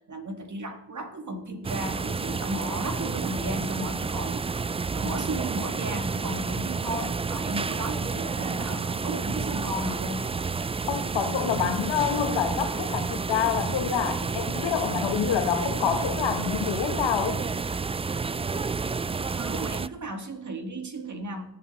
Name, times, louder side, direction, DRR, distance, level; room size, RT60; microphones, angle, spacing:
voice 1, 0.0-4.4 4.9-10.3 19.4-21.5, right 1 dB, 40° right, 6 dB, 1.9 m, -34 dB
sound 1, 1.6-19.9, right 4 dB, 15° right, 0.3 m, -30 dB
voice 2, 10.9-17.4, left 8 dB, 85° left, 7 dB, 1.5 m, -27 dB
17.5 x 7.5 x 4.1 m, 0.93 s
cardioid pair, 60°, 43 cm